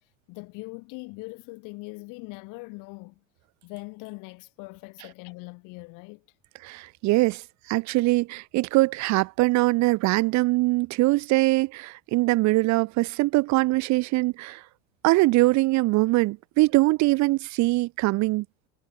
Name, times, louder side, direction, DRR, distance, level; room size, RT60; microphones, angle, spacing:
voice 1, 0.3-3.2 3.6-6.2, left 28 dB, 70° left, 2.4 m, -41 dB
voice 2, 6.6-7.4 7.7-14.6 15.0-18.4, right 21 dB, 60° right, 0.8 m, -22 dB
supercardioid pair, 100°, 33 cm